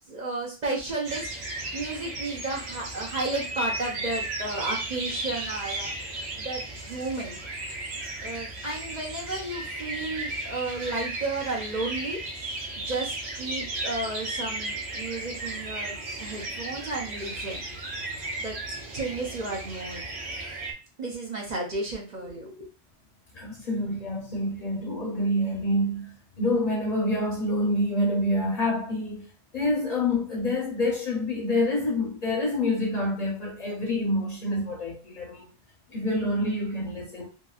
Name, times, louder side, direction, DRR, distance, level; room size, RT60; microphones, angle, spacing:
voice 1, 0.1-1.3 1.7-5.9 6.4-7.4 8.2-12.2 12.8-17.6 18.4-18.6 18.9-20.0 21.0-22.7, right 2 dB, 45° right, 0.7 m, -33 dB
sound 1, 1.0-20.7, right 2 dB, 75° right, 0.9 m, -35 dB
voice 2, 23.3-29.2 29.5-35.5 35.9-37.3, left 1 dB, 45° left, 0.8 m, -27 dB
2.9 x 2.5 x 2.3 m
omnidirectional pair, 1.1 m